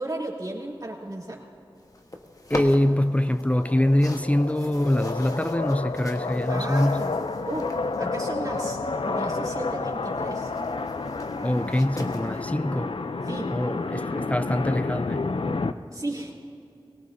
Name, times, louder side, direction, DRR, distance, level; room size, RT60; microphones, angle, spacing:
voice 1, 0.0-1.4 6.5-7.2 7.4-7.7 8.0-10.5 13.2-13.5 13.9-14.0 15.9-16.3, right 1 dB, 45° right, 3.1 m, -34 dB
sound 1, 1.8-12.4, left 1 dB, 40° left, 1.2 m, -41 dB
voice 2, 2.5-7.1 11.3-13.0 13.5-15.3, left 1 dB, 15° left, 0.4 m, -24 dB
sound 2, 3.1-15.7, left 3 dB, 75° left, 0.5 m, -30 dB
22.0 x 17.5 x 2.7 m
wide cardioid pair, 40°, 9 cm